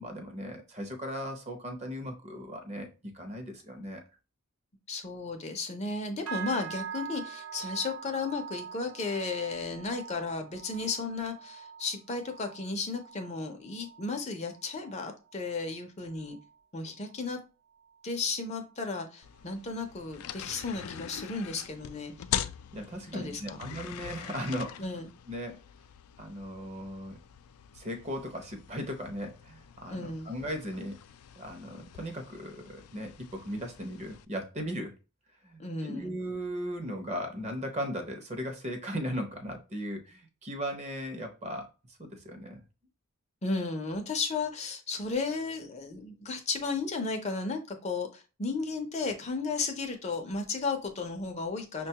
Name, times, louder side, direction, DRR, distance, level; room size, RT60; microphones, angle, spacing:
voice 1, 0.0-4.0 22.7-25.0 25.3-25.6 26.2-27.2 27.7-31.0 31.4-34.9 35.4-41.7 42.0-42.6, equal, 30° right, 0.6 m, -37 dB
voice 2, 4.9-16.4 16.7-17.4 18.0-22.4 23.1-23.6 24.8-25.1 29.9-30.3 35.6-36.1 43.4-51.9, left 3 dB, 30° left, 0.5 m, -34 dB
sound 1, 6.3-15.8 16.1-16.5 16.9-17.3 17.8-17.9, right 7 dB, 80° right, 0.7 m, -44 dB
sound 2, 19.2-34.2, left 10 dB, 85° left, 0.3 m, -43 dB
5.9 x 2.2 x 2.8 m
head